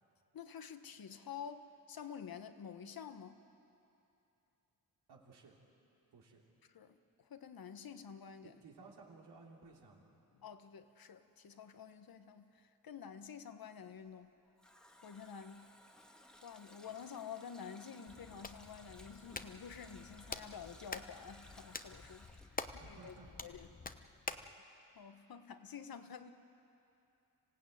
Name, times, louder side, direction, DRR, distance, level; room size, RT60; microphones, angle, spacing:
voice 1, 0.3-3.4 6.7-8.6 10.3-14.3 15.0-15.7 16.4-22.3 22.8-23.1 23.4-23.7 24.9-26.3, left 7 dB, 65° left, 9 dB, 1.3 m, -49 dB
voice 2, 5.1-5.6 6.1-6.5 8.4-10.1 22.6-23.5 24.2-24.3, right 4 dB, 85° right, -1 dB, 3.3 m, -58 dB
Water tap faucet, 14.4-23.7 24.0-24.1, equal, ahead, 1.6 m, -61 dB
Hands, 18.1-24.5, left 3 dB, 20° left, 0.9 m, -48 dB
26.0 x 15.5 x 9.3 m, 2.8 s
cardioid pair, 75°, 39 cm